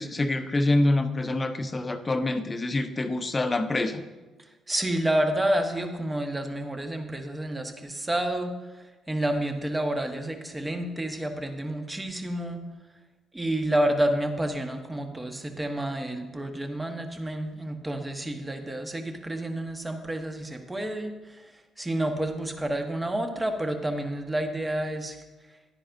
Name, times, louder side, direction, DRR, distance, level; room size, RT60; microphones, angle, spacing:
voice 1, 0.0-4.0, left 2 dB, 30° left, 9 dB, 0.8 m, -26 dB
voice 2, 4.7-12.6 13.3-25.2, right 1 dB, 20° right, 5 dB, 1.3 m, -29 dB
11.0 x 9.7 x 2.6 m, 1.2 s
hypercardioid pair, 45°, 0 cm